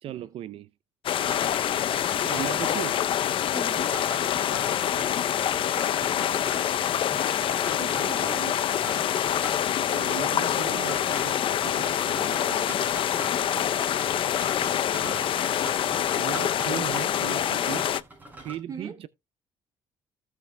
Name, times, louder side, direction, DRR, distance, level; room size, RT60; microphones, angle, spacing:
voice 1, 0.0-0.7 2.2-3.0 8.3-8.5 9.2-9.3 9.9-12.7 15.0-15.3 16.1-17.9 18.4-19.1, right 12 dB, 60° right, 0.5 m, -37 dB
sound 1, 1.0-18.0, left 10 dB, 55° left, 0.6 m, -26 dB
sound 2, 1.2-18.6, right 2 dB, 15° right, 5.6 m, -43 dB
voice 2, 3.5-4.0 7.8-8.4 13.4-14.0 18.7-19.0, right 4 dB, 35° right, 3.8 m, -40 dB
16.0 x 5.9 x 2.2 m
cardioid pair, 100°, 11 cm